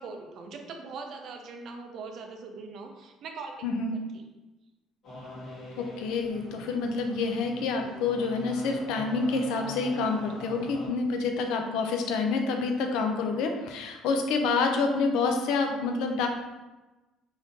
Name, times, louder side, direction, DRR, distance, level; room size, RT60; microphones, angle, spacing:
voice 1, 0.0-3.6 3.9-4.3, right 4 dB, 45° right, 4 dB, 0.4 m, -41 dB
voice 2, 3.6-4.0 5.8-16.3, left 4 dB, 70° left, 4 dB, 0.4 m, -28 dB
sound 1, 5.0-10.9, left 1 dB, 45° left, 1.2 m, -43 dB
3.5 x 2.7 x 2.7 m, 1.1 s
cardioid pair, 180°, 0 cm